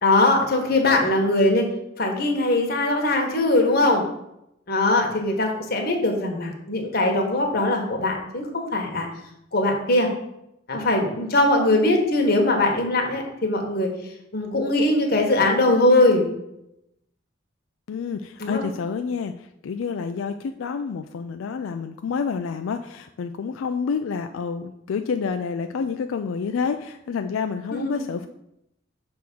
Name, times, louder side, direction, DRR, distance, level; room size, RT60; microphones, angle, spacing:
voice 1, 0.0-1.7 2.0-4.0 4.7-9.1 9.5-10.1 10.7-13.9 14.3-16.3 18.4-18.6 27.7-28.0, left 2 dB, 50° left, 2 dB, 1.3 m, -21 dB
voice 2, 17.9-28.3, left 5 dB, 90° left, 7 dB, 0.4 m, -28 dB
6.2 x 3.6 x 6.0 m, 0.83 s
head